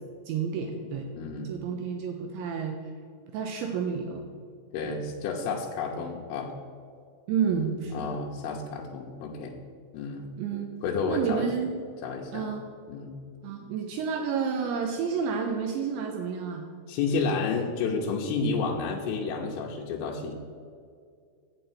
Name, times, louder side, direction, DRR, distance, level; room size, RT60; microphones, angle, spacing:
voice 1, 0.3-1.1 1.4-2.8 3.3-4.3 4.9-5.0 7.3-8.1 10.4-10.7 11.1-11.8 12.3-12.6 13.4-16.7, right 6 dB, 80° right, 3 dB, 2.8 m, -30 dB
voice 2, 1.1-1.6 4.7-6.5 7.6-7.7 7.9-9.6 9.9-10.3 10.8-11.5 12.0-12.5 12.9-13.2 16.9-20.3, left 4 dB, 85° left, -1 dB, 3.3 m, -31 dB
8.7 x 7.7 x 4.4 m, 2.3 s
omnidirectional pair, 5.6 m